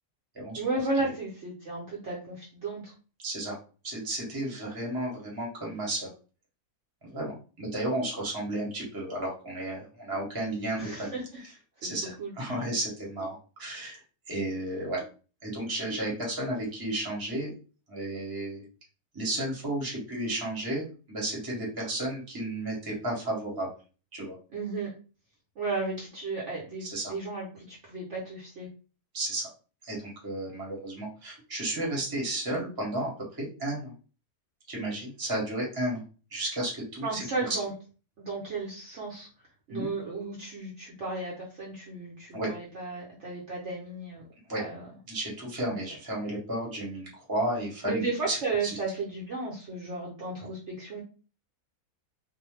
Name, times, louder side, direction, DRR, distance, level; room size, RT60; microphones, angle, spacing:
voice 1, 0.6-2.9 10.8-11.2 12.2-12.3 24.5-24.9 25.6-28.7 37.0-37.7 38.2-39.3 39.7-44.2 44.5-44.9 45.7-45.8 47.8-51.0, right 3 dB, 55° right, -4 dB, 0.9 m, -34 dB
voice 2, 3.2-3.5 3.8-6.1 7.0-11.2 11.8-14.0 14.3-15.0 15.4-17.5 17.9-18.6 19.1-23.7 24.1-24.3 26.8-27.1 29.1-29.5 29.8-33.9 34.7-36.0 36.3-37.6 39.7-39.9 42.3-42.5 44.5-44.6 45.1-48.0 48.3-48.4 48.6-48.7, right 1 dB, 15° right, -3 dB, 0.8 m, -33 dB
2.6 x 2.1 x 3.1 m, 0.36 s
omnidirectional pair, 1.7 m